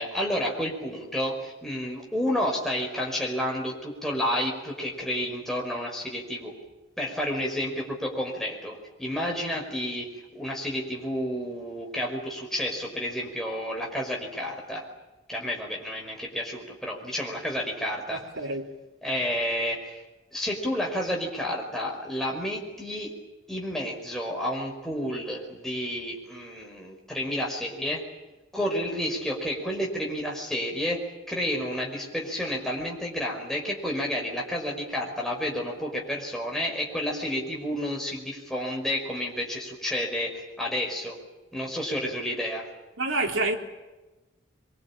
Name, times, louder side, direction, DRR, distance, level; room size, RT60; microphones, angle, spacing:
voice 1, 0.0-6.5 7.0-14.9 15.3-18.2 19.0-20.0 20.3-23.1 23.5-28.1 28.5-31.0 31.3-41.2 41.5-42.7, equal, ahead, 5.4 m, -30 dB
voice 2, 18.1-18.8 43.0-43.5, right 2 dB, 80° right, 3.8 m, -28 dB
24.5 x 24.0 x 8.9 m
head